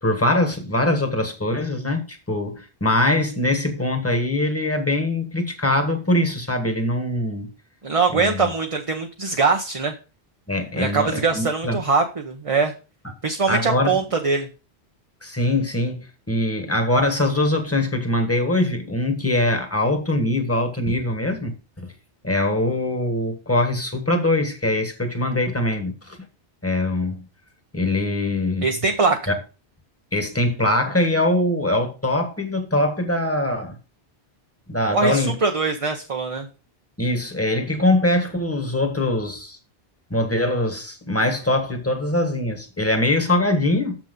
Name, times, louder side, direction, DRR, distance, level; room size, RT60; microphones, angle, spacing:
voice 1, 0.0-7.5 8.1-8.5 10.5-11.8 13.5-14.0 15.2-21.9 22.2-26.2 26.6-27.2 27.7-28.7 29.3-29.4 30.1-33.8 34.7-35.3 37.0-39.6 40.1-44.0, left 1 dB, 15° left, 1.5 m, -22 dB
voice 2, 7.8-9.9 10.8-12.7 13.2-14.5 28.6-29.3 34.9-36.5, right 4 dB, 35° right, 0.9 m, -22 dB
7.1 x 6.1 x 5.3 m
omnidirectional pair, 1.1 m